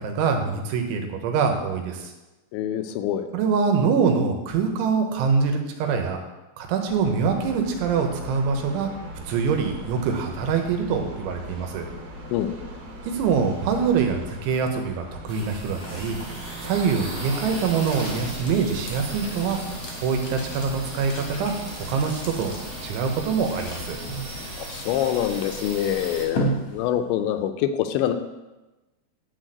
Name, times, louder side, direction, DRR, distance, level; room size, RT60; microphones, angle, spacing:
voice 1, 0.0-2.1 3.3-6.2 6.6-8.9 9.3-11.9 13.1-16.2 16.6-19.6 20.0-21.6 21.9-22.6 22.8-24.0, right 5 dB, 90° right, 4 dB, 3.5 m, -24 dB
voice 2, 2.5-3.3 12.3-12.7 24.6-28.1, left 10 dB, 80° left, 8 dB, 2.8 m, -25 dB
sound 1, 6.8-24.5, equal, 55° right, 2.9 m, -40 dB
sound 2, 15.2-27.3, right 1 dB, 60° left, 1.6 m, -37 dB
sound 3, 15.3-26.2, right 1 dB, 25° right, 1.3 m, -38 dB
11.0 x 4.3 x 7.7 m, 1.1 s
omnidirectional pair, 5.3 m